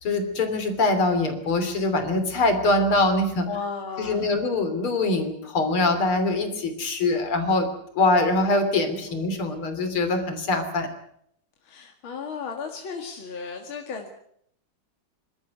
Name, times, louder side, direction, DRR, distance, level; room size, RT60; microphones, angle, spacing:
voice 1, 0.0-3.5 4.0-7.7 7.9-10.9, left 2 dB, 90° left, 7 dB, 3.9 m, -23 dB
voice 2, 3.5-4.4 8.9-9.1 11.6-14.1, left 5 dB, 75° left, 3 dB, 2.8 m, -35 dB
26.0 x 13.0 x 9.5 m, 0.71 s
omnidirectional pair, 2.3 m